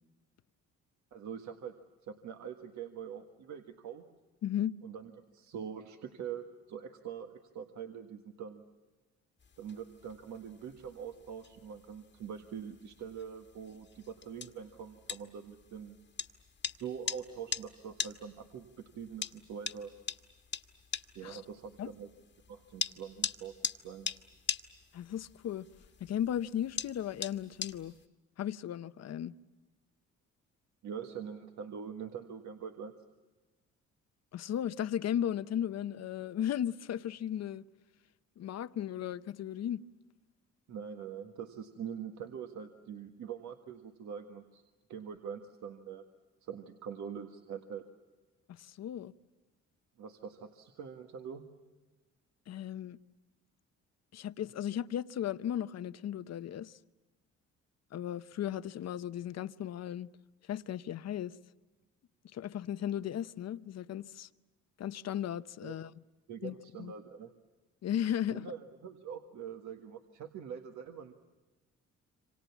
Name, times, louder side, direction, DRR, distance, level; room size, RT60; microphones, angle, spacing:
voice 1, 1.1-1.7 2.0-4.0 4.8-8.6 9.6-16.0 16.8-19.9 21.2-22.1 22.5-23.5 23.8-24.1 30.8-32.9 40.7-44.6 44.9-46.0 46.4-47.8 50.0-51.4 65.6-65.7 66.3-67.3 68.3-71.1, right 7 dB, 70° right, 1.7 m, -44 dB
voice 2, 4.4-4.7 21.2-21.4 21.8-21.9 24.9-25.7 26.0-27.9 28.4-29.3 34.3-37.6 38.4-39.8 48.6-49.1 52.5-53.0 54.1-56.8 57.9-60.1 60.5-61.3 62.3-64.3 64.8-65.9 66.4-66.9 67.8-68.4, left 10 dB, 60° left, 0.8 m, -36 dB
sound 1, 9.4-28.0, left 6 dB, 35° left, 1.4 m, -42 dB
27.5 x 25.5 x 7.2 m
cardioid pair, 90°, 30 cm